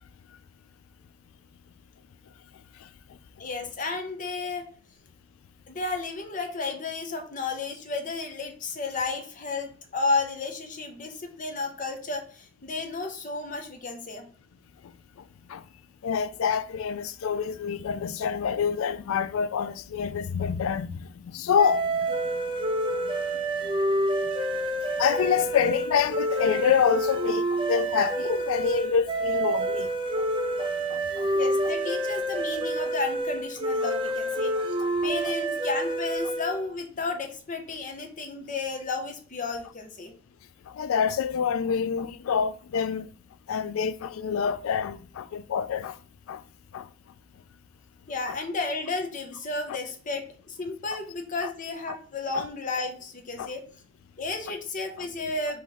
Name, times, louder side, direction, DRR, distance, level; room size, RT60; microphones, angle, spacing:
voice 1, 3.4-4.7 5.7-14.3 31.3-34.5 35.0-40.1 48.1-53.6 54.2-55.6, left 3 dB, 40° left, 0.8 m, -32 dB
voice 2, 16.0-22.4 23.6-23.7 24.2-24.3 25.0-29.9 30.2-30.3 30.6-31.3 35.0-35.1 40.7-43.1 43.5-46.0 46.3-46.4 46.7-46.9 48.3-48.4 50.9-51.0 51.4-51.5 52.3-52.4 53.4-53.5, left 7 dB, 70° left, 0.3 m, -27 dB
sound 1, 21.6-36.6, right 1 dB, 25° right, 0.5 m, -28 dB
3.8 x 3.1 x 4.1 m
head